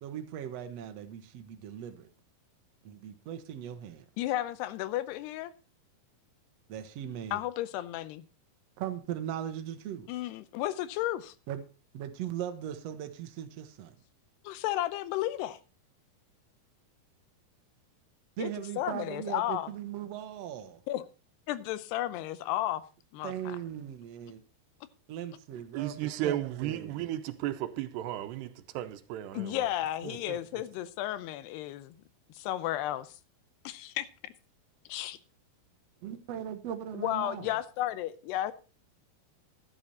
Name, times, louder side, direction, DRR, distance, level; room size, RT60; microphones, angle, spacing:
voice 1, 0.0-2.1 2.8-4.0 6.7-7.4 8.8-10.1 11.5-11.6 11.9-13.9 18.4-20.8 23.2-24.4 25.1-27.1 36.0-37.5, right 10 dB, 75° right, 1.5 m, -39 dB
voice 2, 4.2-5.5 7.3-8.2 10.1-11.3 14.4-15.6 18.4-18.5 18.8-19.7 20.9-21.0 21.5-22.8 23.1-23.6 29.3-32.0 32.3-33.2 33.6-34.3 34.9-35.2 36.9-38.5, left 14 dB, 85° left, 2.8 m, -33 dB
voice 3, 25.7-29.7 30.0-30.4, right 13 dB, 90° right, 3.0 m, -35 dB
12.0 x 11.0 x 4.2 m
omnidirectional pair, 4.6 m